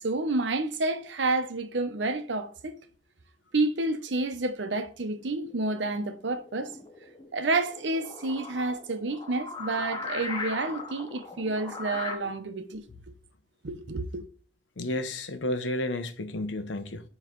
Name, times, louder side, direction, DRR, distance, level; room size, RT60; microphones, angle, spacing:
voice 1, 0.0-2.8 3.5-6.7 7.3-12.8 13.6-14.2, right 2 dB, 80° right, 0.8 m, -29 dB
sound 1, 5.2-12.2, left 3 dB, 25° left, 0.9 m, -39 dB
voice 2, 14.8-17.0, left 1 dB, 90° left, 0.8 m, -31 dB
9.4 x 3.2 x 3.7 m
head